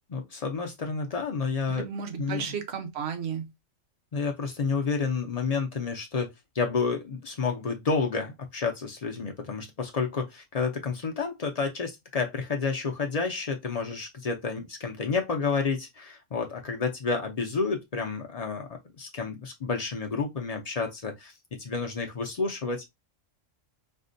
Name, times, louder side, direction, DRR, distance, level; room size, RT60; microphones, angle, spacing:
voice 1, 0.1-1.9 2.2-2.5 4.1-21.3 21.6-22.8, left 4 dB, 60° left, 0.4 m, -30 dB
voice 2, 1.7-3.5, right 7 dB, 60° right, 1.0 m, -33 dB
4.3 x 2.1 x 2.5 m
omnidirectional pair, 1.4 m